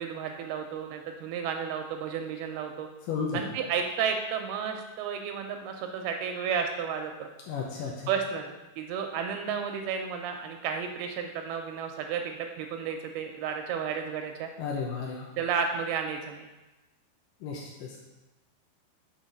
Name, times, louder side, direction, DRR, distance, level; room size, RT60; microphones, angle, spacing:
voice 1, 0.0-2.9 3.3-7.3 8.1-8.5 8.8-14.5 15.4-16.5, right 6 dB, 80° right, 4 dB, 2.4 m, -32 dB
voice 2, 3.1-3.4 7.5-8.1 14.6-15.3 17.4-18.0, left 5 dB, 80° left, -2 dB, 1.9 m, -33 dB
6.3 x 4.2 x 5.2 m, 1.1 s
omnidirectional pair, 4.7 m